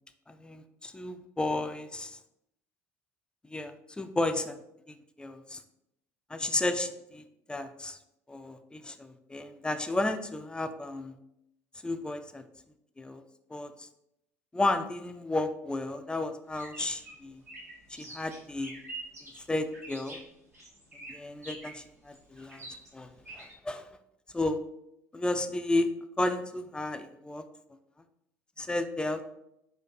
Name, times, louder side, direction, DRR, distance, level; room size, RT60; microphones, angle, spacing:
voice 1, 0.3-2.2 3.5-4.6 5.2-5.6 6.3-7.2 7.5-8.0 8.3-11.1 11.8-12.4 13.0-13.2 13.5-13.7 14.5-17.4 17.9-18.7 19.5-20.2 21.1-22.7 22.9-23.1 23.3-23.9 24.3-24.6 25.1-25.9 26.2-27.4 28.6-29.2, left 2 dB, 10° left, 9 dB, 0.4 m, -32 dB
sound 1, 16.5-23.5, right 2 dB, 90° right, 0.9 m, -46 dB
3.9 x 2.6 x 4.1 m, 0.82 s
figure-of-eight pair, 55°, 8 cm